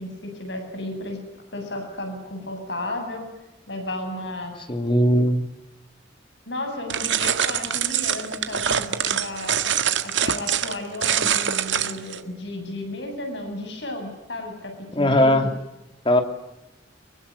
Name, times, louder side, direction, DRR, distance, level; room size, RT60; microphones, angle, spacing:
voice 1, 0.0-3.3 3.7-4.5 6.5-9.5 10.2-15.3, left 1 dB, 70° left, 4 dB, 7.9 m, -33 dB
voice 2, 4.7-5.4 14.9-15.5 16.0-16.2, left 1 dB, 30° left, 7 dB, 2.7 m, -18 dB
sound 1, 6.9-12.2, right 8 dB, 80° right, 1.8 m, -24 dB
25.0 x 23.0 x 9.6 m, 0.94 s
head